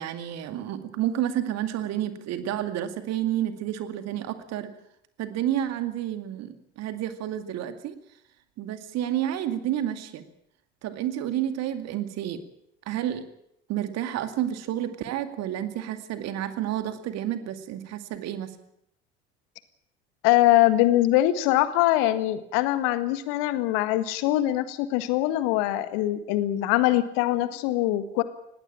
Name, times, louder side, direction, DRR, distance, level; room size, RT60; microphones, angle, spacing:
voice 1, 0.0-4.7 5.2-7.9 8.6-10.2 10.8-12.4 12.9-13.3 13.7-18.5, right 11 dB, 50° right, 9 dB, 2.3 m, -30 dB
voice 2, 20.2-28.2, left 15 dB, 60° left, 12 dB, 1.7 m, -23 dB
20.0 x 16.5 x 8.8 m, 0.76 s
figure-of-eight pair, 60°, 33 cm